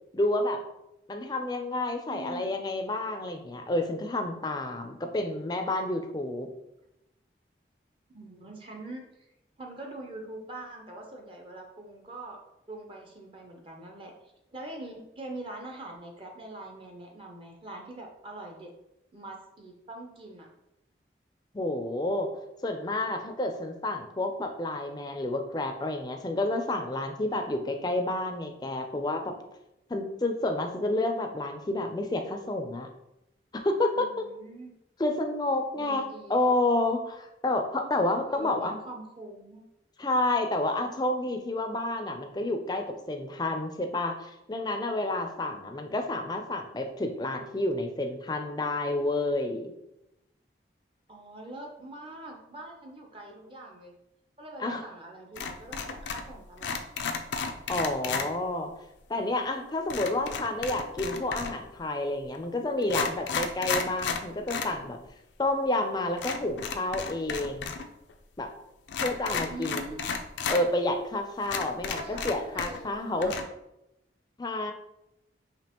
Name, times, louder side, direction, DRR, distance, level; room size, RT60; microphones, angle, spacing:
voice 1, 0.1-0.6 1.1-6.5 21.5-22.3 22.6-29.3 29.9-32.9 33.5-34.1 35.0-38.7 40.0-49.7 54.6-54.8 57.7-58.7 59.1-65.0 65.4-67.7 68.4-68.5 69.0-69.8 70.5-73.4 74.4-74.7, left 2 dB, 20° left, 5 dB, 0.4 m, -29 dB
voice 2, 2.1-2.5 8.1-9.3 9.6-12.4 12.7-18.7 19.1-20.5 34.0-34.7 35.7-36.4 38.3-39.6 51.1-53.9 54.4-56.8 69.5-70.1 71.5-73.4, right 2 dB, 30° right, 1 dB, 0.6 m, -43 dB
sound 1, 55.4-56.3 56.6-58.3 59.9-61.7 62.3-62.4 62.8-64.7 65.1-65.2 66.2-67.8 68.1-68.2 68.9-70.6 71.1-71.2 71.4-72.9 73.2-73.4, left 5 dB, 85° left, 0.4 m, -33 dB
5.1 x 2.9 x 2.9 m, 0.87 s
head